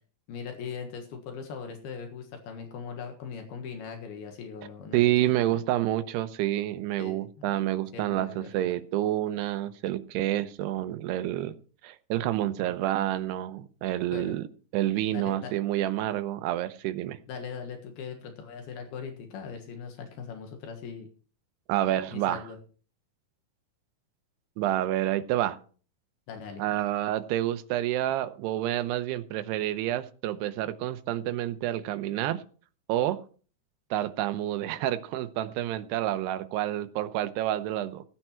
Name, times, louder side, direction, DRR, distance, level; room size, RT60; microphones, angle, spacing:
voice 1, 0.3-5.6 7.0-7.5 7.9-8.6 14.1-14.4 15.1-15.5 17.3-21.1 22.1-22.6 26.3-26.6, left 6 dB, 70° left, 4 dB, 3.4 m, -40 dB
voice 2, 4.9-11.5 11.8-14.5 14.7-17.2 21.7-22.4 24.6-25.6 26.6-32.4 32.9-33.2 33.9-38.0, right 13 dB, 85° right, 12 dB, 2.9 m, -28 dB
16.0 x 9.0 x 4.4 m, 0.41 s
omnidirectional pair, 4.7 m